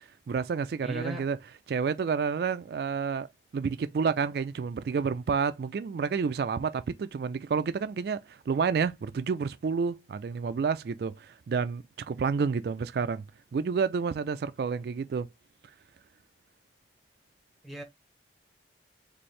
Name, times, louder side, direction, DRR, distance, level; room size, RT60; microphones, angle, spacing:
voice 1, 0.0-1.4 1.7-13.2 13.5-15.3, right 5 dB, 60° right, 0.3 m, -30 dB
voice 2, 0.8-1.3 17.6-17.8, equal, ahead, 0.7 m, -38 dB
4.3 x 2.7 x 3.1 m
head